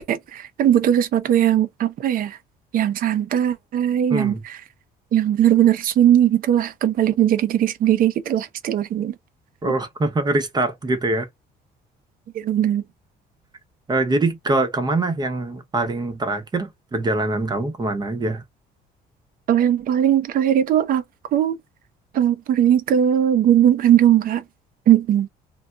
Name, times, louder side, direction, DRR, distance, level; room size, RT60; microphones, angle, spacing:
voice 1, 0.1-2.4 2.7-4.6 5.1-9.1 12.3-12.8 19.5-21.0 21.3-21.6 22.1-24.4 24.9-25.3, right 10 dB, 55° right, 0.6 m, -19 dB
voice 2, 4.1-4.4 9.6-11.3 13.9-18.4, right 2 dB, 25° right, 0.8 m, -23 dB
2.2 x 2.1 x 3.7 m
cardioid pair, 110°, 17 cm